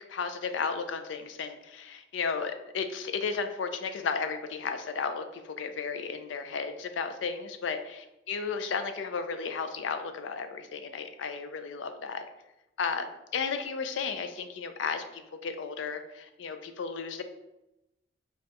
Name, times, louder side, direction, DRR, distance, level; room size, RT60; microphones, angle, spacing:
voice 1, 0.0-12.2 12.8-17.2, left 5 dB, 80° left, 8 dB, 0.4 m, -34 dB
5.1 x 2.4 x 2.8 m, 0.92 s
head